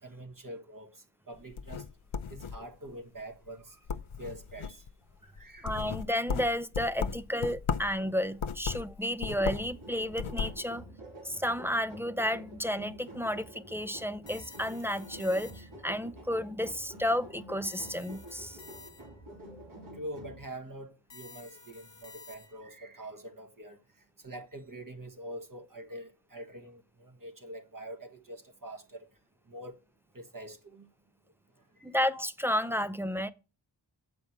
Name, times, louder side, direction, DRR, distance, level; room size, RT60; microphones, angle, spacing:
voice 1, 0.0-1.9 2.3-3.8 4.2-4.8 5.2-5.8 19.9-23.8 24.2-29.0 29.5-29.8 30.1-30.9 31.8-31.9, right 1 dB, 40° right, 1.6 m, -45 dB
sound 1, 1.4-2.9 3.3-3.6 3.9-4.9 5.4-8.0 8.3-9.8 10.0-10.6, left 6 dB, 80° left, 0.7 m, -35 dB
voice 2, 5.6-10.8 11.2-18.6 19.5-19.6 31.8-33.3, left 1 dB, 5° right, 0.6 m, -32 dB
sound 2, 9.2-20.4, right 1 dB, 85° right, 3.0 m, -49 dB
sound 3, 14.3-15.9 17.6-19.3 21.1-22.8, left 4 dB, 60° left, 1.3 m, -52 dB
7.8 x 5.2 x 7.3 m
wide cardioid pair, 50°, 48 cm